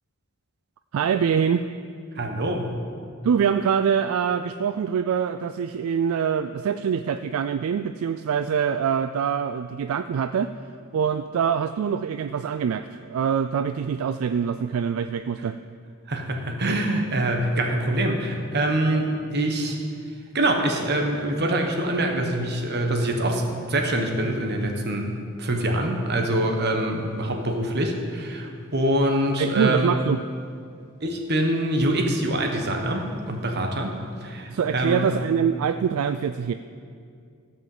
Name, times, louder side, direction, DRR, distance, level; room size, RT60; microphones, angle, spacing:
voice 1, 0.9-1.7 3.2-10.5 10.9-15.6 29.4-30.2 34.5-36.5, right 7 dB, 70° right, 10 dB, 0.3 m, -24 dB
voice 2, 2.2-2.8 16.1-19.8 20.3-25.1 25.4-30.0 31.0-35.1, right 1 dB, 50° right, 3 dB, 1.3 m, -25 dB
14.5 x 5.4 x 7.3 m, 2.3 s
head